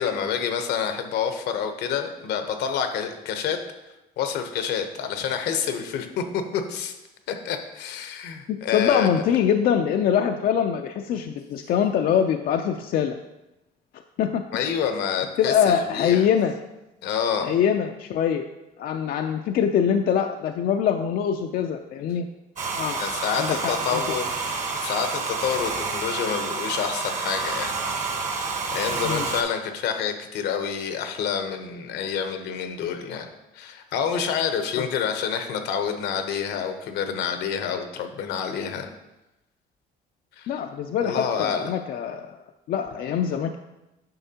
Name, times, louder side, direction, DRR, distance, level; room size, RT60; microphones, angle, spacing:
voice 1, 0.0-3.6 4.2-6.9 7.3-9.3 14.5-16.3 17.0-17.5 23.0-28.2 28.7-33.3 33.5-38.9 40.4-40.6 41.0-41.7, left 7 dB, 80° left, 7 dB, 0.8 m, -28 dB
voice 2, 8.5-13.1 14.2-14.4 15.4-16.5 17.4-18.4 18.8-22.3 22.7-23.0 23.3-24.0 29.0-29.3 40.5-42.4 42.7-43.6, left 8 dB, 60° left, 5 dB, 0.4 m, -23 dB
Domestic sounds home sounds, 22.6-29.4, right 4 dB, 45° right, 1.3 m, -29 dB
9.0 x 5.8 x 2.8 m, 0.97 s
cardioid pair, 110°, 17 cm